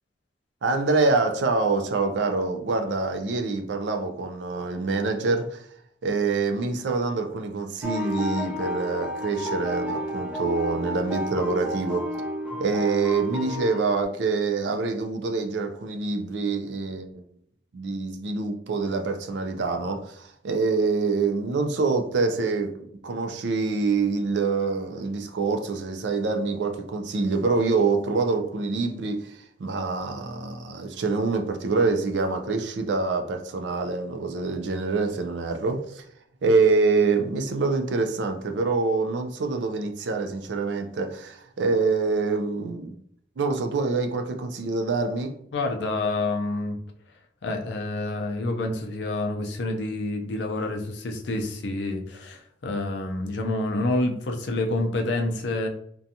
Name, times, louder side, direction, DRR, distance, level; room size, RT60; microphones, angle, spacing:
voice 1, 0.6-5.6 6.0-12.1 12.6-17.3 17.7-36.1 36.4-43.0 43.4-45.4, right 4 dB, 75° right, 0.4 m, -26 dB
sound 1, 7.8-14.0, equal, 5° right, 0.4 m, -31 dB
voice 2, 45.5-46.8 47.4-55.7, left 2 dB, 75° left, 0.5 m, -28 dB
2.5 x 2.2 x 2.7 m
head